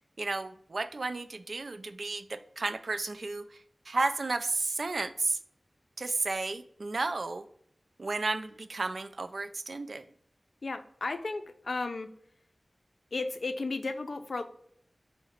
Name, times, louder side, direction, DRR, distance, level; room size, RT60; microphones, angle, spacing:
voice 1, 0.2-3.5 3.9-5.4 6.0-7.4 8.0-10.0, right 3 dB, 70° right, 10 dB, 0.3 m, -32 dB
voice 2, 10.6-12.1 13.1-14.4, left 3 dB, 75° left, 9 dB, 0.4 m, -34 dB
4.7 x 2.1 x 4.3 m, 0.67 s
wide cardioid pair, 80°, 0 cm